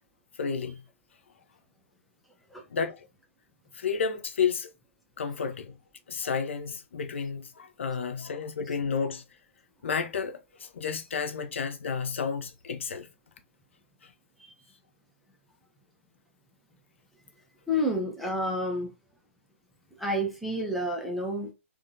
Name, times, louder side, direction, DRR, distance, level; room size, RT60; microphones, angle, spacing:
voice 1, 0.4-0.8 2.7-3.1 3.7-4.7 5.2-5.8 6.1-9.2 9.8-13.1 14.0-14.1, left 6 dB, 60° left, 0.5 m, -31 dB
voice 2, 17.7-18.9 20.0-21.5, equal, ahead, 0.4 m, -29 dB
2.6 x 2.2 x 2.6 m
figure-of-eight pair, 120°, 8 cm